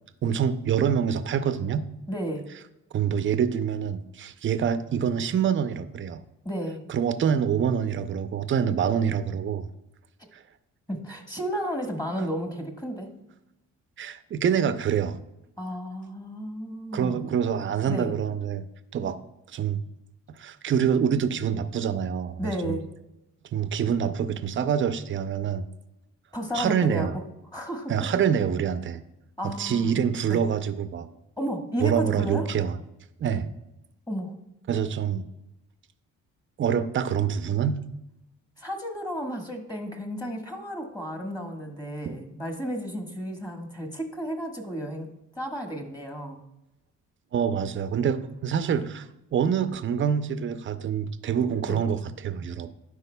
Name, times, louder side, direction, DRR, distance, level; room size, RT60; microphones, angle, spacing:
voice 1, 0.2-1.9 2.9-6.2 6.9-9.7 14.0-15.2 16.9-18.6 18.9-19.2 19.5-19.8 20.4-22.8 23.5-25.6 26.5-27.1 27.9-29.0 29.4-31.1 31.8-32.8 33.2-33.5 34.7-35.2 36.6-37.8 42.1-42.2 47.3-52.7, right 8 dB, 40° right, 11 dB, 0.5 m, -26 dB
voice 2, 2.1-2.5 6.4-6.8 10.9-13.1 15.6-17.3 17.8-18.1 22.4-22.8 26.3-27.1 27.5-27.9 29.4-29.9 30.3-30.4 31.4-32.5 34.1-34.4 38.6-46.4 48.7-48.8 51.7-51.8, equal, 15° left, 3 dB, 1.3 m, -33 dB
12.0 x 4.9 x 2.2 m, 0.90 s
cardioid pair, 90°, 30 cm